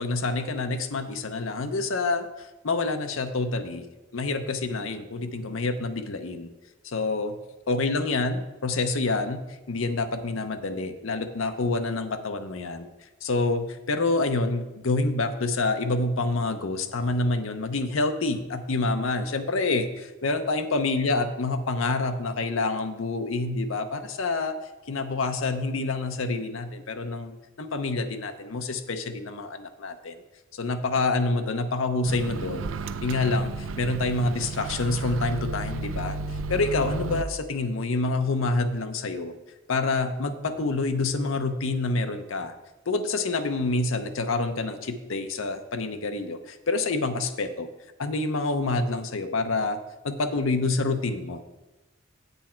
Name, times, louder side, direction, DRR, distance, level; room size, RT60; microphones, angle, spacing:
voice 1, 0.0-3.8 4.1-6.5 6.8-7.3 7.7-12.9 13.2-24.5 24.9-30.1 30.5-32.7 33.0-36.2 36.5-39.3 39.7-42.5 42.9-47.7 48.0-49.8 50.0-51.4, left 3 dB, 75° left, 7 dB, 0.7 m, -27 dB
Microwave oven, 32.1-37.2, right 3 dB, 70° right, 0.4 m, -33 dB
8.5 x 8.1 x 4.4 m, 1.1 s
head